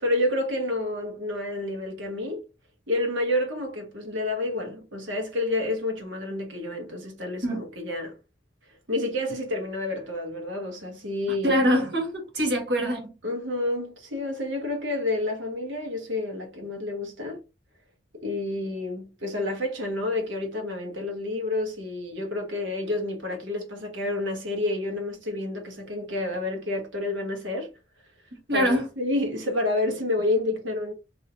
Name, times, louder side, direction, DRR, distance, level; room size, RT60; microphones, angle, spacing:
voice 1, 0.0-2.4 2.9-8.2 8.9-11.6 13.2-17.4 18.1-27.7 28.5-30.9, left 2 dB, 80° right, 1.2 m, -29 dB
voice 2, 11.4-13.1 28.5-28.9, equal, 60° right, 1.5 m, -24 dB
3.1 x 2.7 x 2.7 m
head